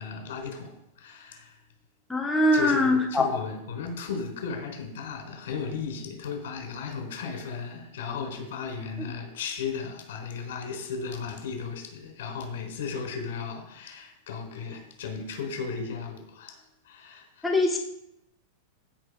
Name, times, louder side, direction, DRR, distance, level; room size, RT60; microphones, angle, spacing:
voice 1, 0.0-1.6 2.5-17.5, left 5 dB, 75° left, 2 dB, 4.2 m, -35 dB
voice 2, 2.1-3.2 17.4-17.8, left 1 dB, 5° left, 0 dB, 0.7 m, -22 dB
15.0 x 5.9 x 4.9 m, 0.82 s
supercardioid pair, 180°, 0 cm